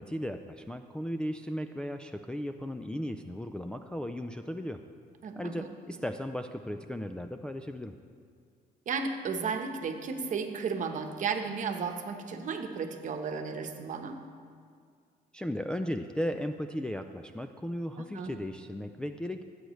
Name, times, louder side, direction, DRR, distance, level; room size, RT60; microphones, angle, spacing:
voice 1, 0.0-4.8 5.4-7.9 15.3-19.4, equal, 5° left, 6 dB, 0.3 m, -36 dB
voice 2, 5.2-5.7 8.9-14.2 18.1-18.4, right 5 dB, 50° right, 5 dB, 1.0 m, -34 dB
16.0 x 7.9 x 3.2 m, 2.1 s
cardioid pair, 110°, 17 cm